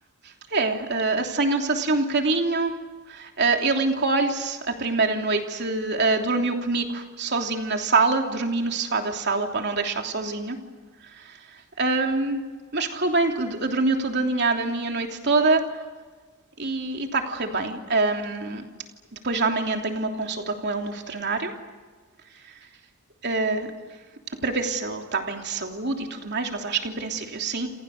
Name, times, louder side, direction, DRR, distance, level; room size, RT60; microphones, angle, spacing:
voice 1, 0.5-2.7 3.1-10.6 11.2-11.3 11.8-12.4 12.7-15.7 16.6-18.6 19.2-21.5 23.2-23.7 24.4-27.7, right 3 dB, 55° right, 3 dB, 3.2 m, -25 dB
29.0 x 28.0 x 6.7 m, 1.4 s
head